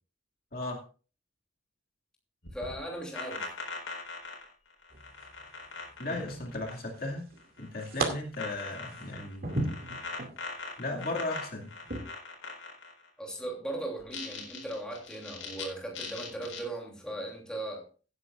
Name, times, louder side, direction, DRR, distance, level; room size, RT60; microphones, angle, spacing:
voice 1, 0.5-0.8 6.0-7.3 7.6-9.5 10.8-11.7, left 2 dB, 50° left, 1 dB, 2.4 m, -36 dB
sound 1, 2.4-7.1 7.4-8.0 8.3-13.1 14.0-15.6 15.9-16.6, left 4 dB, 85° left, 4.4 m, -41 dB
voice 2, 2.5-3.5 13.2-17.8, right 1 dB, 5° left, -1 dB, 3.0 m, -38 dB
sound 2, 4.9-5.4 6.1-7.0 7.3-8.1 8.5-10.4 10.9-11.1 11.8-12.0, right 2 dB, 50° right, 2.4 m, -35 dB
17.0 x 9.7 x 2.5 m, 0.37 s
head